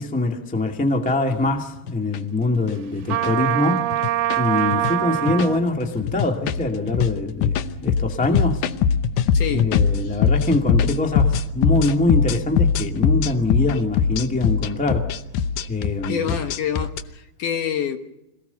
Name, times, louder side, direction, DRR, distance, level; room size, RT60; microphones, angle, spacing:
voice 1, 0.0-3.9 4.4-8.6 9.5-15.1 15.7-16.2, left 2 dB, 5° left, 2 dB, 0.8 m, -23 dB
sound 1, 1.0-1.1 1.8-2.2 2.6-2.7 3.1-3.3 3.9-4.4 4.7-4.9 5.3-5.6 6.0-17.0, left 7 dB, 85° left, 1.6 m, -21 dB
Trumpet, 3.1-5.6, right 14 dB, 75° right, 2.6 m, -23 dB
voice 2, 9.3-9.7 10.0-10.2 16.1-18.0, left 8 dB, 65° left, 7 dB, 2.4 m, -27 dB
26.5 x 18.5 x 7.0 m, 0.88 s
omnidirectional pair, 4.6 m